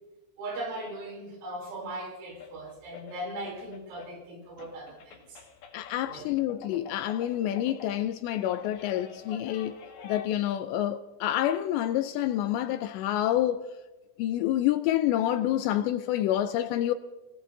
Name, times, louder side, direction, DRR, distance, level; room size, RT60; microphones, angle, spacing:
voice 1, 0.4-5.4 6.1-6.3, right 1 dB, 85° right, 6.1 m, -39 dB
sound 1, 1.9-2.0 2.3-4.2 4.6-10.3, left 6 dB, 60° left, 3.6 m, -48 dB
voice 2, 5.7-9.8 10.0-13.7 14.2-16.9, left 12 dB, 80° left, 2.6 m, -28 dB
29.5 x 18.0 x 2.7 m
omnidirectional pair, 5.5 m